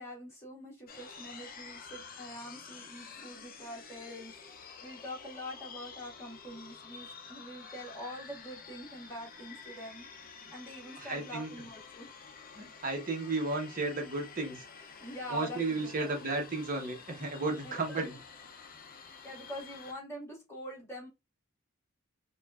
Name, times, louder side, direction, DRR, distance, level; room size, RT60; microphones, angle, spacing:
voice 1, 0.0-10.1 10.4-12.1 15.0-16.2 17.6-18.0 19.2-21.1, equal, 15° left, 1.7 m, -45 dB
sound 1, 0.9-19.9, left 5 dB, 45° left, 0.6 m, -50 dB
voice 2, 11.0-11.5 12.5-14.6 15.3-18.1, right 3 dB, 40° right, 1.1 m, -33 dB
5.0 x 2.5 x 2.4 m
head